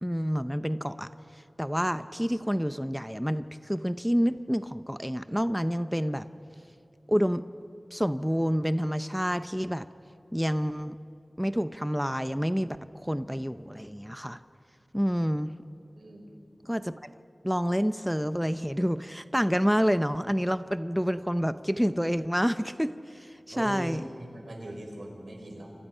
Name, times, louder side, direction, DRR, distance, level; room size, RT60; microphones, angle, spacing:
voice 1, 0.0-6.3 7.1-7.4 7.9-9.9 10.3-11.0 11.4-14.4 14.9-15.5 16.6-17.1 17.4-24.0, equal, ahead, 11 dB, 0.6 m, -28 dB
voice 2, 16.0-16.3 23.5-25.7, right 1 dB, 80° right, 1 dB, 5.2 m, -40 dB
29.5 x 26.0 x 5.6 m, 2.8 s
wide cardioid pair, 65°, 0 cm